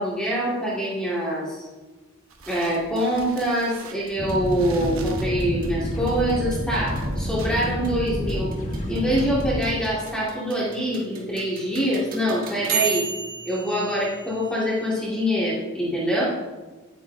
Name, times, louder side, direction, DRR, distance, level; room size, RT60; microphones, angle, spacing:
voice 1, 0.0-1.6 2.5-8.5 8.9-13.1 13.5-16.2, equal, 5° left, -8 dB, 2.0 m, -25 dB
sound 1, 2.3-7.5, right 2 dB, 90° right, 1.1 m, -40 dB
sound 2, 2.4-15.1, right 6 dB, 45° right, 1.5 m, -35 dB
sound 3, 4.2-9.6, equal, 35° left, 1.3 m, -29 dB
10.0 x 8.7 x 2.7 m, 1.2 s
head